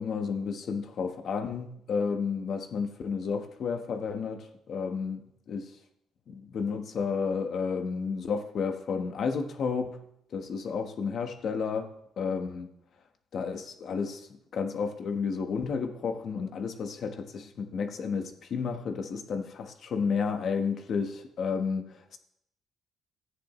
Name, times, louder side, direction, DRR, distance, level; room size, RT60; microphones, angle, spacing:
voice 1, 0.0-5.2 5.5-5.7 6.3-10.0 10.3-12.7 13.3-14.2 14.5-21.8, left 5 dB, 55° left, 1.2 m, -31 dB
15.0 x 9.8 x 3.1 m
cardioid pair, 120°, 0 cm